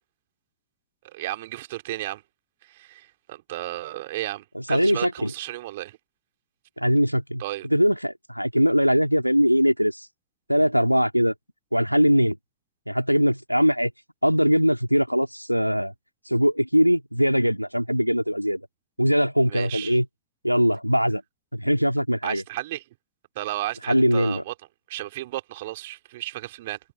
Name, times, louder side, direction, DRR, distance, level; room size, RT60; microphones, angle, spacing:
voice 1, 1.0-2.2 2.6-6.0 7.4-7.7 19.5-20.0 22.2-22.8 23.3-24.5 24.9-26.8, right 16 dB, 55° right, 4.1 m, -33 dB
voice 2, 4.5-5.3 6.8-7.4 7.7-10.1 10.5-11.3 11.7-12.4 12.9-13.9 14.2-15.9 16.3-18.6 19.0-20.1 20.4-21.2 21.5-22.4 23.9-24.4, equal, 90° right, 3.3 m, -21 dB
figure-of-eight pair, 90°, 0 cm